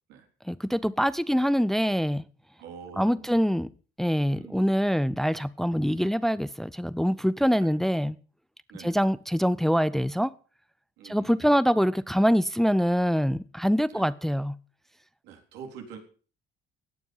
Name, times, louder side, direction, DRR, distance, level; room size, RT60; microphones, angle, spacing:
voice 1, 0.5-2.2 3.0-3.7 4.0-8.2 8.8-10.3 11.0-14.6, equal, ahead, 0.6 m, -24 dB
voice 2, 2.6-3.3 4.4-4.6 5.9-6.1 7.6-7.7 8.7-9.0 11.0-11.4 13.9-14.1 15.2-16.0, right 7 dB, 90° right, 3.9 m, -45 dB
17.0 x 9.4 x 5.6 m
cardioid pair, 110°, 17 cm